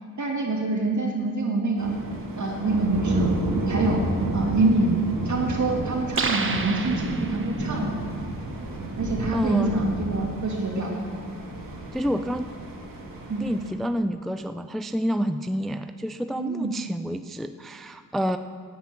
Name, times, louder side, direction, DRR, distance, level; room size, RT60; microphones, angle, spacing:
voice 1, 0.2-1.9 2.4-3.3 3.7-4.0 4.3-8.1 9.0-10.9 13.3-13.5 16.4-16.7, right 2 dB, 55° right, -1 dB, 2.8 m, -25 dB
sound 1, 1.8-13.7, right 2 dB, 75° right, 2.3 m, -31 dB
sound 2, 6.1-7.7, right 4 dB, 35° right, 1.0 m, -29 dB
voice 2, 9.3-9.8 11.9-12.5 13.4-18.4, equal, ahead, 9 dB, 0.4 m, -28 dB
10.0 x 9.3 x 8.9 m, 2.1 s
cardioid pair, 85°, 34 cm